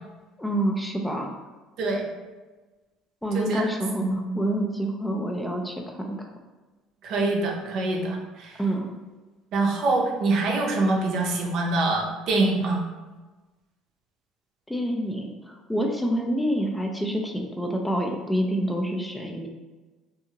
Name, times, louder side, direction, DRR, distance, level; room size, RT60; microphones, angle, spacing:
voice 1, 0.4-1.3 3.2-6.3 8.6-8.9 14.7-19.5, right 1 dB, 5° left, 1 dB, 0.3 m, -27 dB
voice 2, 3.3-3.7 4.0-4.2 7.0-8.6 9.5-12.8, right 2 dB, 65° right, -1 dB, 0.6 m, -25 dB
2.7 x 2.5 x 2.8 m, 1.2 s
cardioid pair, 115°, 0 cm